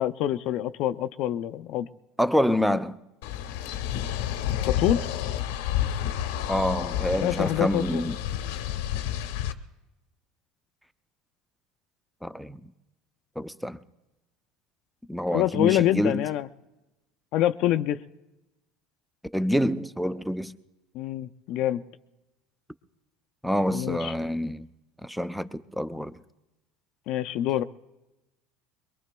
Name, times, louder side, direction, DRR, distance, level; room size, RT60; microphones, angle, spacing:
voice 1, 0.0-1.9 4.6-5.1 7.2-8.0 15.3-16.5 17.3-18.0 20.9-21.8 23.7-24.1 27.1-27.6, left 13 dB, 55° left, 0.4 m, -26 dB
voice 2, 2.2-3.0 6.5-8.2 12.2-12.6 13.4-13.8 15.1-16.3 19.3-20.5 23.4-24.7 25.0-26.2, equal, ahead, 0.5 m, -27 dB
sound 1, 3.2-9.5, left 11 dB, 90° left, 0.8 m, -30 dB
23.0 x 22.5 x 2.3 m
supercardioid pair, 135°, 0 cm